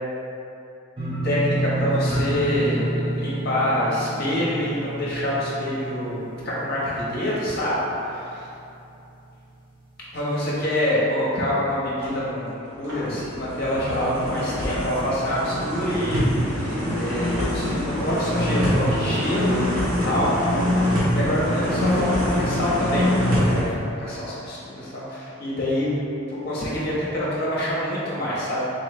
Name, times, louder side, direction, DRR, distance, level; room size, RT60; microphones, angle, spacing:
sound 1, 1.0-7.8 8.1-8.7 9.0-9.1, right 1 dB, 25° right, 0.7 m, -29 dB
voice 1, 1.2-8.2 10.1-20.6 20.9-28.6, left 1 dB, 45° left, -8 dB, 1.1 m, -26 dB
sound 2, 12.0-12.2 12.7-23.6, left 1 dB, 75° right, 1.0 m, -24 dB
4.0 x 3.1 x 3.2 m, 2.8 s
head